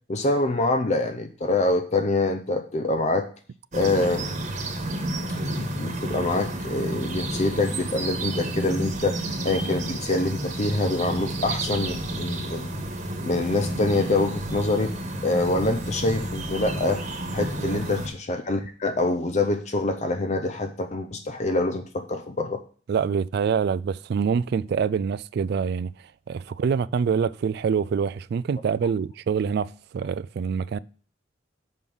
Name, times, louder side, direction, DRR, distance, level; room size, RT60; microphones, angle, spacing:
voice 1, 0.1-3.3 3.7-4.4 5.5-12.8 13.2-14.9 15.2-17.0 17.3-22.6, left 2 dB, 40° left, 0.6 m, -25 dB
sound 1, 3.7-18.1, right 1 dB, 40° right, 1.3 m, -31 dB
voice 2, 22.9-25.9 26.3-30.8, right 6 dB, 60° right, 0.3 m, -25 dB
6.2 x 5.5 x 6.9 m
head